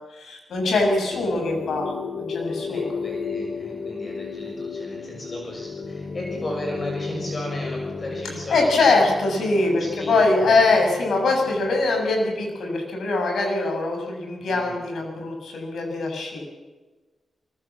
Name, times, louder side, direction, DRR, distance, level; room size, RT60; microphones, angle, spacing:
voice 1, 0.0-2.9 8.5-16.4, left 3 dB, 80° left, 2 dB, 7.5 m, -23 dB
sound 1, 1.1-13.0, left 4 dB, 65° left, 2.5 m, -33 dB
voice 2, 2.7-8.9 9.6-10.6 14.4-14.8, left 1 dB, 35° left, 0 dB, 6.5 m, -35 dB
24.0 x 22.5 x 7.5 m, 1.2 s
cardioid pair, 95°, 0 cm